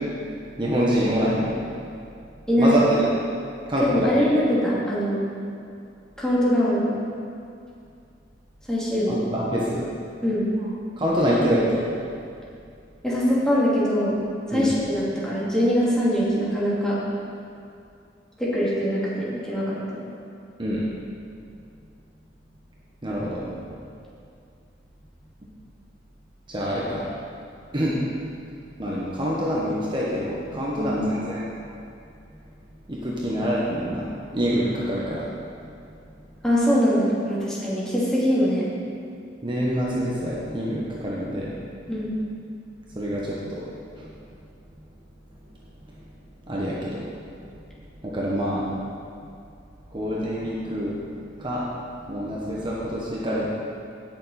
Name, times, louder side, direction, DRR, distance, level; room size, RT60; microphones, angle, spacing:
voice 1, 0.6-1.6 2.6-3.1 3.7-4.3 9.1-9.9 11.0-11.9 14.5-14.7 20.6-20.8 23.0-23.4 26.5-27.1 27.7-27.9 28.8-31.5 32.9-35.3 39.4-41.5 42.9-43.6 44.0-44.1 46.5-47.0 48.0-48.8 49.9-50.9 51.4-51.7 52.1-53.5, equal, 25° right, -6 dB, 1.3 m, -26 dB
voice 2, 2.5-2.8 3.8-5.2 6.2-6.9 8.7-9.2 10.2-10.4 13.0-14.2 14.5-17.0 18.4-20.0 30.7-31.0 36.4-38.7 41.9-42.1, equal, 5° left, -9 dB, 2.6 m, -22 dB
17.0 x 7.0 x 4.3 m, 2.5 s
head